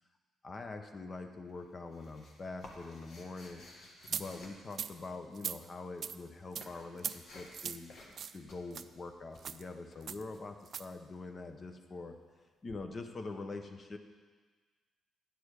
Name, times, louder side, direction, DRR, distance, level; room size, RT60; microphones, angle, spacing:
voice 1, 0.4-3.6 4.1-12.2 12.6-14.0, left 3 dB, 35° left, 6 dB, 0.9 m, -44 dB
sound 1, 1.5-5.3 6.0-7.6 7.9-8.2 8.5-10.4 12.7-12.8, left 2 dB, 60° left, 1.5 m, -55 dB
sound 2, 4.1-4.2 4.7-4.9 5.3-5.6 6.0-6.2 6.5-6.7 7.0-7.2 7.5-7.8 8.2-8.4 8.7-8.8 9.4-9.6 10.1-10.2 10.6-10.8, right 7 dB, 55° right, 0.3 m, -39 dB
9.4 x 6.9 x 4.9 m, 1.5 s
cardioid pair, 90°, 0 cm